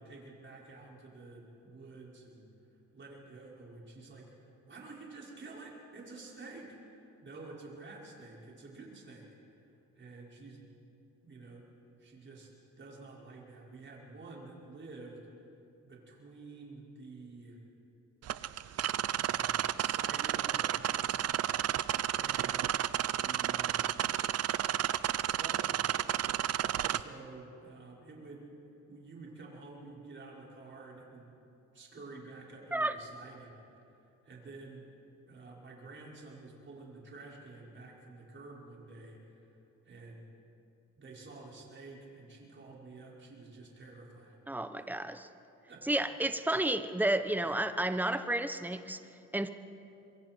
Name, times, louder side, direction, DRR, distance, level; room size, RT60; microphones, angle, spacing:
voice 1, 0.0-2.5 2.9-4.3 4.6-9.3 9.9-10.6 11.2-11.7 12.0-15.2 15.8-17.6 19.1-21.3 22.1-22.8 23.1-23.9 25.3-25.9 26.8-28.4 28.9-31.4 31.7-33.6 34.0-34.9 35.3-39.5 39.8-40.3 41.0-44.4 45.7-46.1, right 3 dB, 40° right, -4 dB, 5.6 m, -50 dB
sound 1, 18.2-27.0, right 11 dB, 55° right, 0.6 m, -32 dB
voice 2, 44.5-45.3 45.9-49.0 49.3-49.5, right 1 dB, 5° right, 10 dB, 1.0 m, -31 dB
26.5 x 23.0 x 4.6 m, 2.8 s
cardioid pair, 90°, 30 cm